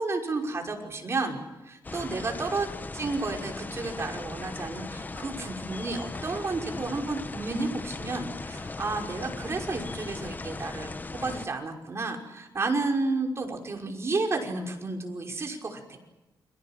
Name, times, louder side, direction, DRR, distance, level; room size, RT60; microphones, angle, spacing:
voice 1, 0.0-1.4 1.6-2.7 2.9-16.0, right 3 dB, 35° right, 2 dB, 5.6 m, -31 dB
sound 1, 1.8-11.5, left 3 dB, 25° left, 1.1 m, -38 dB
29.5 x 25.0 x 7.6 m, 1.0 s
wide cardioid pair, 130°, 8 cm